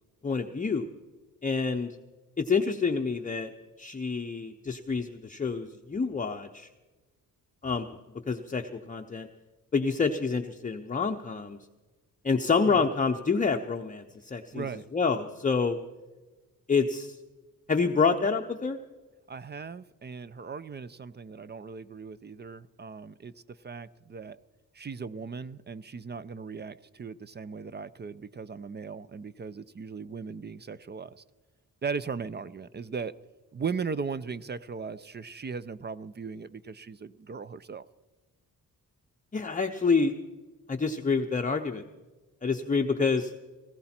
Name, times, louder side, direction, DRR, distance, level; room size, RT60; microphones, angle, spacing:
voice 1, 0.2-0.9 1.4-2.0 2.4-3.5 3.8-6.7 7.6-7.9 8.3-9.3 9.7-11.6 12.2-14.7 14.9-15.8 16.7-17.2 17.7-18.8 39.3-40.1 40.7-41.8 42.4-43.3, left 4 dB, 25° left, 4 dB, 0.7 m, -27 dB
voice 2, 14.5-14.8 19.3-24.4 24.7-31.2 31.8-33.1 33.5-37.8, right 5 dB, 30° right, 16 dB, 0.5 m, -38 dB
19.0 x 15.5 x 4.4 m, 1.2 s
wide cardioid pair, 130°, 35 cm